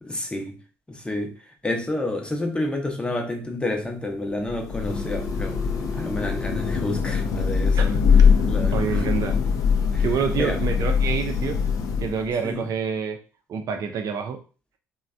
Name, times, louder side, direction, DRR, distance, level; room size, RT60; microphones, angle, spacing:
voice 1, 0.0-0.6 0.9-5.6 5.9-8.0 8.5-9.1 9.9-10.0 10.3-10.6 12.4-12.7, left 1 dB, 15° left, 0.8 m, -30 dB
Thunder / Rain, 4.4-12.4, left 6 dB, 55° left, 0.5 m, -22 dB
Telephone, 4.9-6.9, left 1 dB, 15° right, 0.8 m, -37 dB
voice 2, 7.7-9.4 10.0-11.6 12.0-13.2 13.5-14.4, right 6 dB, 55° right, 0.6 m, -28 dB
3.1 x 2.2 x 2.5 m
hypercardioid pair, 50°, 7 cm